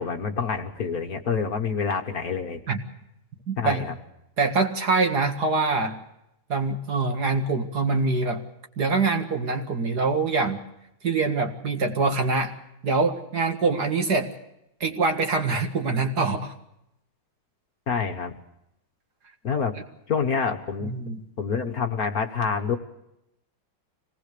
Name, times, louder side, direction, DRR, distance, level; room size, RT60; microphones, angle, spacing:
voice 1, 0.0-2.6 3.6-3.9 17.9-18.3 19.4-19.7 20.1-21.0 21.4-22.8, left 6 dB, 50° left, 5 dB, 1.6 m, -27 dB
voice 2, 3.5-3.9 4.4-6.0 6.5-8.4 8.8-10.6 11.0-12.5 12.8-14.3 14.8-16.5 20.8-21.2, right 4 dB, 50° right, 5 dB, 2.3 m, -24 dB
25.0 x 19.0 x 6.7 m, 0.83 s
omnidirectional pair, 2.2 m